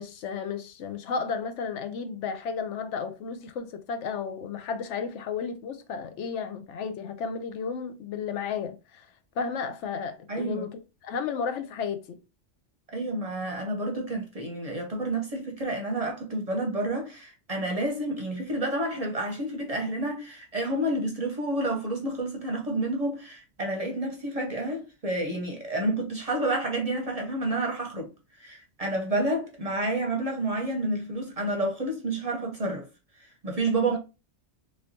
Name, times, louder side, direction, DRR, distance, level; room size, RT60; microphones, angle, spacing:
voice 1, 0.0-9.1 9.4-12.2 33.7-34.0, left 6 dB, 80° left, 0.9 m, -33 dB
voice 2, 10.3-10.7 12.9-28.1 28.4-32.9 33.1-34.0, right 1 dB, 40° right, 0.7 m, -29 dB
3.2 x 3.0 x 2.6 m
omnidirectional pair, 1.2 m